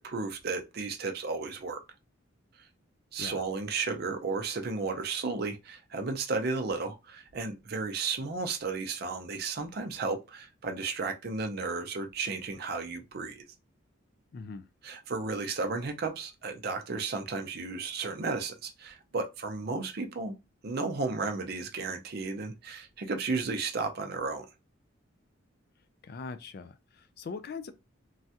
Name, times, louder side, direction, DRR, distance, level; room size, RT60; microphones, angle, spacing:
voice 1, 0.0-1.8 3.1-13.5 14.8-20.3 20.6-24.5, right 4 dB, 50° right, 0.5 m, -33 dB
voice 2, 14.3-14.6 26.0-27.7, left 4 dB, 50° left, 0.3 m, -41 dB
3.1 x 2.3 x 2.8 m
head